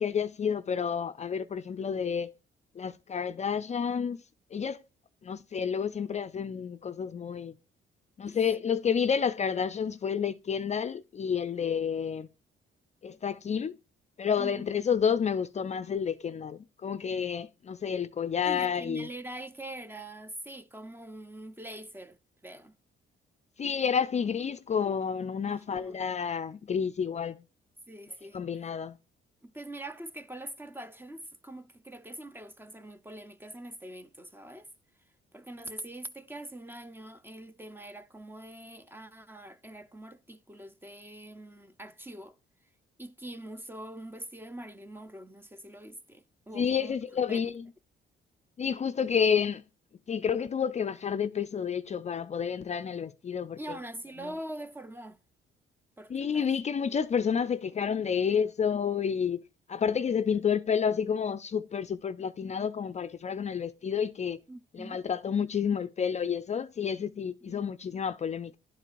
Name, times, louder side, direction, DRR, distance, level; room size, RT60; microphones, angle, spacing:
voice 1, 0.0-2.3 2.8-4.2 4.5-4.8 5.2-7.5 8.2-12.3 13.0-13.8 14.2-19.1 23.6-27.4 28.3-29.0 46.5-47.6 48.6-49.6 50.1-53.6 56.1-59.4 59.7-64.4 64.7-68.6, left 7 dB, 35° left, 0.4 m, -30 dB
voice 2, 8.3-8.6 14.4-14.6 18.4-22.2 22.4-22.7 25.5-26.0 27.9-28.4 29.4-34.7 35.3-42.4 43.0-46.9 47.3-47.5 53.6-55.2 56.0-56.5 64.5-65.1 67.4-67.6, right 1 dB, 10° right, 0.6 m, -43 dB
11.5 x 4.5 x 2.5 m
cardioid pair, 90°, 20 cm